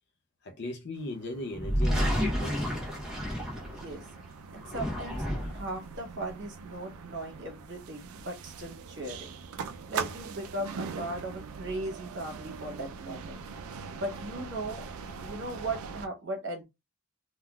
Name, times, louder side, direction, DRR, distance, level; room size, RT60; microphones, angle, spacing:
voice 1, 0.4-2.6, left 1 dB, 50° left, 0.4 m, -37 dB
sound 1, 1.0-16.1, right 5 dB, 75° right, 0.3 m, -42 dB
sound 2, 1.5-4.1 4.6-5.7, equal, ahead, 0.7 m, -30 dB
voice 2, 3.6-4.1 4.5-5.2 5.5-9.4 9.9-13.4 13.9-14.8 15.2-16.6, right 1 dB, 50° right, 1.1 m, -38 dB
3.5 x 2.3 x 2.2 m
head